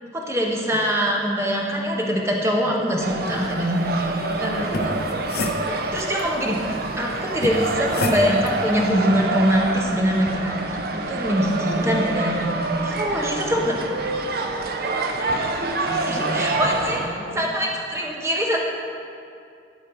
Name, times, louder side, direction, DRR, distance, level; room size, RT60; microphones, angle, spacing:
voice 1, 0.0-4.1 4.4-4.5 5.6-10.6 10.9-12.5 12.8-13.7 16.0-18.6, equal, 15° right, -1 dB, 0.8 m, -23 dB
sound 1, 3.0-17.1, right 2 dB, 50° right, 0.5 m, -27 dB
voice 2, 4.0-5.7 11.7-12.0 13.2-13.6 15.3-16.5 17.0-17.5, equal, 80° left, -2 dB, 1.3 m, -34 dB
sound 2, 4.6-6.2 7.4-8.6, left 2 dB, 55° left, 0.6 m, -28 dB
12.0 x 4.6 x 4.7 m, 2.5 s
head